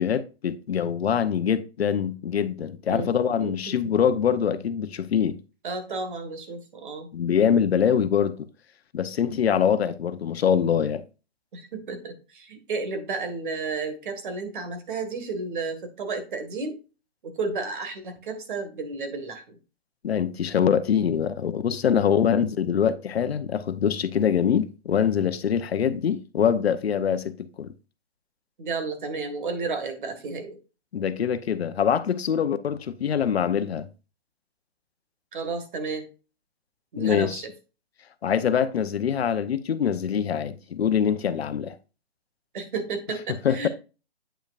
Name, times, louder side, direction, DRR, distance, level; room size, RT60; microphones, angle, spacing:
voice 1, 0.0-5.4 7.1-8.5 8.9-11.0 20.0-27.7 30.9-33.9 37.0-37.4 38.2-41.8 43.4-43.7, left 8 dB, 75° left, 0.8 m, -24 dB
voice 2, 3.4-3.7 5.6-7.1 11.5-16.8 17.2-19.6 28.6-30.6 35.3-36.1 36.9-37.5 42.5-43.7, right 4 dB, 50° right, 1.8 m, -32 dB
8.8 x 5.2 x 2.5 m
hypercardioid pair, 160°, 32 cm